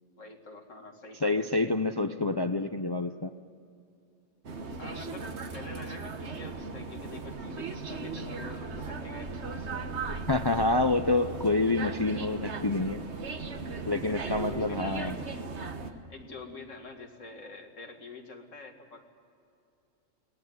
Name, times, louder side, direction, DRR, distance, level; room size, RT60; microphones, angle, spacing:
voice 1, 0.2-1.7 4.8-10.0 14.0-15.2 16.1-19.0, left 3 dB, 85° left, 3 dB, 2.5 m, -46 dB
voice 2, 1.2-3.3 10.3-13.0 13.9-15.2, left 2 dB, 30° left, 9 dB, 0.5 m, -27 dB
sound 1, 4.4-15.9, right 4 dB, 65° right, 1.6 m, -37 dB
22.5 x 18.5 x 9.4 m, 2.5 s
omnidirectional pair, 1.3 m